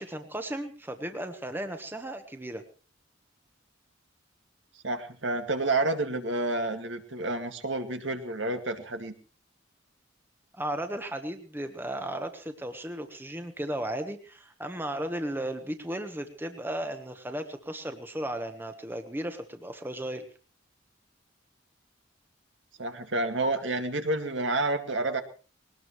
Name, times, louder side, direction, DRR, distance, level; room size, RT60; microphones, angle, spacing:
voice 1, 0.0-2.6 10.5-20.3, right 1 dB, 10° right, 7 dB, 1.3 m, -35 dB
voice 2, 4.8-9.1 22.8-25.2, right 2 dB, 70° right, 6 dB, 2.1 m, -29 dB
21.0 x 19.0 x 3.2 m, 0.37 s
head